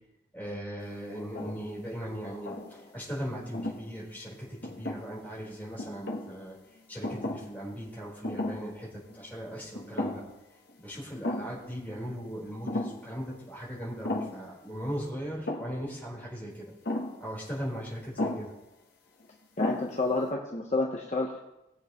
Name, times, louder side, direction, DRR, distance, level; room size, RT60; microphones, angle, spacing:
voice 1, 0.3-6.6 6.9-10.2 10.8-16.6 17.2-18.5, equal, 10° left, -5 dB, 4.1 m, -38 dB
sound 1, 1.1-1.7 2.2-3.0 3.5-3.8 4.6-5.3 5.8-6.3 7.0-7.6 7.8-7.9 8.2-8.7 9.1-9.2 9.7-10.4 10.7-10.8 11.2-11.6 12.7-13.1 14.0-14.5 15.5-15.8 16.8-17.2 18.2-18.6 19.2-19.3 19.6-20.1, left 1 dB, 60° left, 1.4 m, -34 dB
voice 2, 19.6-21.4, left 3 dB, 40° left, -1 dB, 1.0 m, -29 dB
19.5 x 7.8 x 3.1 m, 0.91 s
head